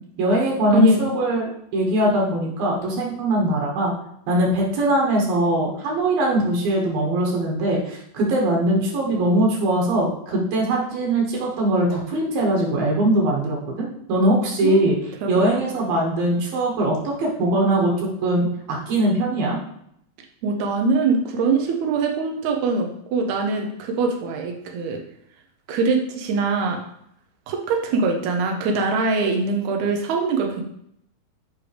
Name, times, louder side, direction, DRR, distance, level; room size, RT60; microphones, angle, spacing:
voice 1, 0.2-3.9 4.3-15.0 15.3-17.9 18.2-19.6, right 1 dB, 70° right, -2 dB, 2.9 m, -21 dB
voice 2, 0.7-1.1 14.6-14.9 15.2-15.6 20.4-25.0 25.7-26.8 27.5-30.6, right 3 dB, 90° right, 2 dB, 1.6 m, -22 dB
8.0 x 5.0 x 3.3 m, 0.73 s
omnidirectional pair, 4.4 m